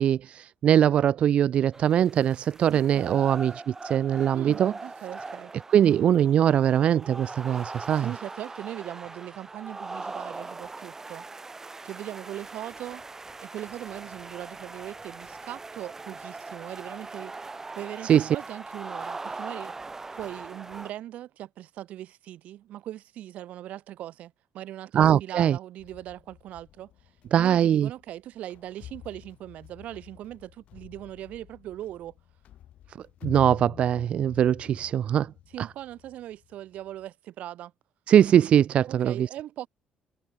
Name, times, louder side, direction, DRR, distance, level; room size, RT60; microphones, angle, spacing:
voice 1, 0.0-4.7 5.7-8.1 18.0-18.3 24.9-25.6 27.3-27.9 33.2-35.3 35.6-35.7 38.1-39.3, right 10 dB, 50° right, 0.4 m, -22 dB
sound 1, 1.7-20.9, right 3 dB, 20° right, 2.8 m, -41 dB
voice 2, 2.7-3.2 4.3-5.5 7.9-11.2 11.8-13.0 13.4-17.3 17.7-19.7 20.1-26.9 27.3-32.1 35.5-37.7 38.9-39.7, right 13 dB, 70° right, 4.0 m, -40 dB
sound 2, 25.8-37.1, left 12 dB, 65° left, 7.2 m, -48 dB
cardioid pair, 130°, 2 cm